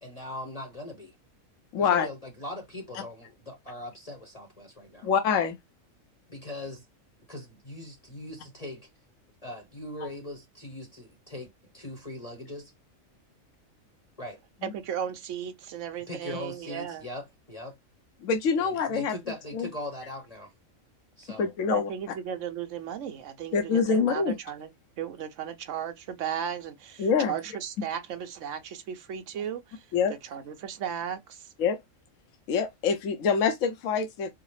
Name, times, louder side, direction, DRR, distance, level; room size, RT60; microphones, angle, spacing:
voice 1, 0.0-1.2 1.8-5.1 6.3-6.9 7.3-8.9 9.4-11.5 11.7-12.7 14.2-14.4 16.1-17.8 18.6-20.5 21.2-21.6, left 1 dB, 30° left, 0.9 m, -40 dB
voice 2, 1.7-2.1 5.0-5.6 18.2-19.1 19.5-19.7 21.4-21.9 23.5-24.4 27.0-27.3 29.9-30.1 31.6-31.8 32.5-34.3, left 6 dB, 75° left, 1.1 m, -25 dB
voice 3, 14.6-17.0 21.7-24.7 25.0-29.9 30.2-31.5, right 9 dB, 65° right, 1.0 m, -35 dB
4.7 x 2.0 x 3.1 m
omnidirectional pair, 1.4 m